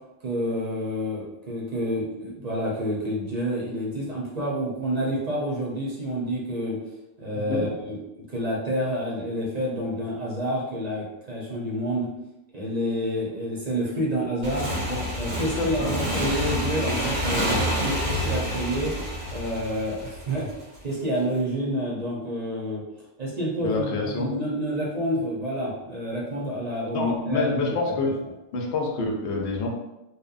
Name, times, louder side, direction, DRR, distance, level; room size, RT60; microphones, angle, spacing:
voice 1, 0.2-6.8 7.2-12.1 12.5-14.7 15.2-18.9 19.3-20.5 20.8-22.8 23.2-27.9, equal, 45° right, -5 dB, 0.6 m, -28 dB
Motorcycle / Engine, 14.4-20.8, equal, 90° right, 1.0 m, -28 dB
voice 2, 15.6-15.9 23.6-24.3 26.9-28.1 28.5-29.7, left 3 dB, 85° left, 1 dB, 0.8 m, -27 dB
2.8 x 2.1 x 2.4 m, 0.94 s
omnidirectional pair, 1.1 m